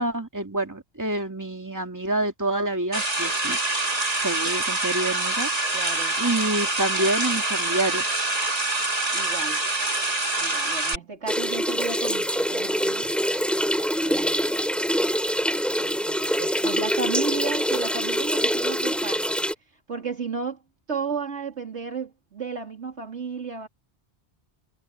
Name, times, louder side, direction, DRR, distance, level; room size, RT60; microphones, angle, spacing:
voice 1, 0.0-3.6 4.2-5.5 6.2-8.0, right 2 dB, 15° right, 2.5 m, -27 dB
sound 1, 2.9-11.0, right 2 dB, 35° right, 2.3 m, -25 dB
voice 2, 5.7-6.2 9.1-9.6 10.4-13.1 14.0-14.7 15.8-19.4 19.9-20.6 20.9-23.7, right 5 dB, 75° right, 3.6 m, -33 dB
sound 2, 11.3-19.5, equal, ahead, 3.8 m, -25 dB
omnidirectional pair, 1.2 m